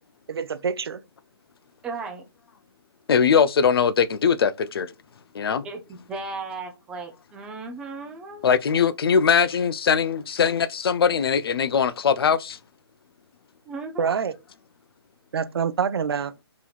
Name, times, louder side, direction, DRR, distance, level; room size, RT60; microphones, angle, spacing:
voice 1, 0.3-1.0 14.0-14.4 15.3-16.3, right 6 dB, 65° right, 0.5 m, -26 dB
voice 2, 1.8-2.2 5.6-8.4 13.7-14.1, right 3 dB, 5° right, 0.4 m, -35 dB
voice 3, 3.1-4.9 5.3-5.7 8.4-12.6, left 6 dB, 65° left, 0.4 m, -21 dB
4.0 x 2.8 x 2.3 m
hypercardioid pair, 160°, 14 cm